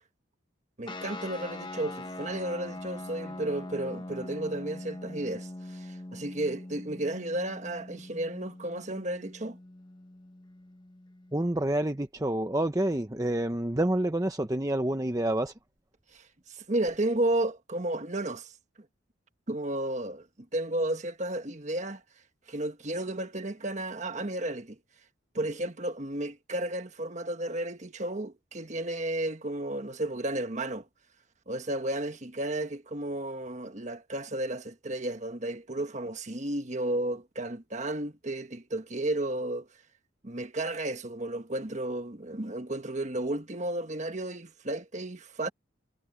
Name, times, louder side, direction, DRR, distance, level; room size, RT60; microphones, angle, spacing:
voice 1, 0.8-9.6 16.1-18.5 19.5-20.3 20.5-22.0 22.5-24.8 25.3-30.8 31.5-39.7 40.2-45.5, right 1 dB, 35° right, 1.5 m, -33 dB
sound 1, 0.9-11.8, left 1 dB, 25° left, 1.0 m, -42 dB
voice 2, 11.3-15.5, right 1 dB, 15° right, 0.8 m, -28 dB
head